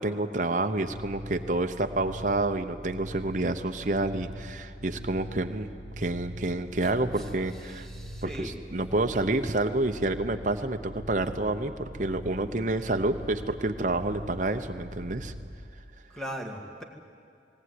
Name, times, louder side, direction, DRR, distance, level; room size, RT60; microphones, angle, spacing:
voice 1, 0.0-5.7 6.0-7.9 8.2-15.3, right 2 dB, 45° right, 6 dB, 0.9 m, -29 dB
sound 1, 0.7-15.4, equal, 65° left, 2.6 m, -42 dB
voice 2, 7.2-8.6 16.1-16.8, equal, ahead, 2 dB, 2.0 m, -39 dB
19.5 x 18.5 x 9.6 m, 2.4 s
head